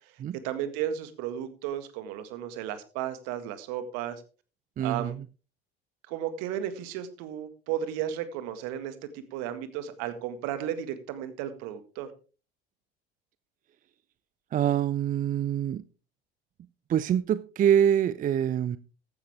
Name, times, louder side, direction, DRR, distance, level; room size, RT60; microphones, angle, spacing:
voice 1, 0.4-4.2 4.8-5.1 6.1-12.1, right 10 dB, 55° right, 11 dB, 1.9 m, -34 dB
voice 2, 4.8-5.2 14.5-15.8 16.9-18.8, right 9 dB, 25° right, 18 dB, 0.5 m, -25 dB
15.0 x 11.0 x 3.5 m, 0.35 s
figure-of-eight pair, 65°, 30 cm